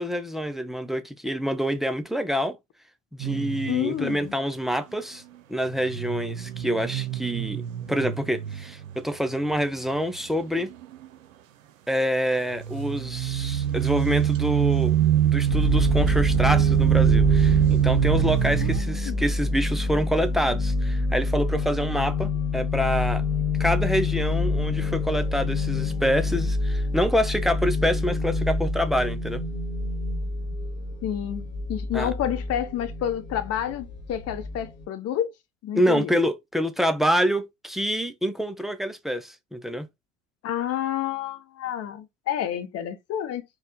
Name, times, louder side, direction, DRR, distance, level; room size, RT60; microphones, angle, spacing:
voice 1, 0.0-2.6 3.1-5.2 5.5-7.6 7.9-10.7 11.9-15.0 15.3-23.2 23.6-29.4 31.9-32.1 35.7-39.9, equal, ahead, 0.4 m, -26 dB
sound 1, 3.2-4.1 5.7-10.2 10.6-11.1 12.5-18.8, right 11 dB, 75° right, 0.7 m, -24 dB
voice 2, 3.7-4.3 18.6-18.7 19.0-19.2 31.0-35.3 35.6-36.1 40.4-43.4, left 10 dB, 35° left, 0.8 m, -29 dB
sound 2, 15.5-34.8, left 2 dB, 85° left, 1.2 m, -27 dB
4.2 x 2.2 x 3.9 m
figure-of-eight pair, 75°, 40 cm